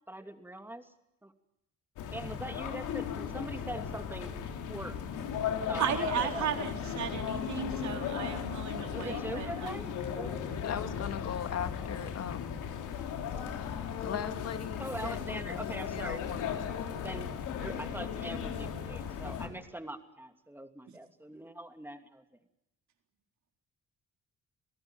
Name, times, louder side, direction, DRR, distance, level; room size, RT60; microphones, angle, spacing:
voice 1, 0.1-0.9 1.2-1.3 2.1-4.4 4.7-5.0 5.7-6.5 8.9-10.4 14.8-16.3 17.0-22.2, right 1 dB, 5° right, 6 dB, 2.8 m, -42 dB
sound 1, 2.0-19.5, left 7 dB, 90° left, 3.5 m, -36 dB
voice 2, 5.8-9.8, right 8 dB, 70° right, 4 dB, 4.0 m, -35 dB
voice 3, 10.6-12.7 14.0-17.1, left 8 dB, 55° left, 9 dB, 1.9 m, -39 dB
28.0 x 17.5 x 9.2 m, 0.87 s
cardioid pair, 90°, 30 cm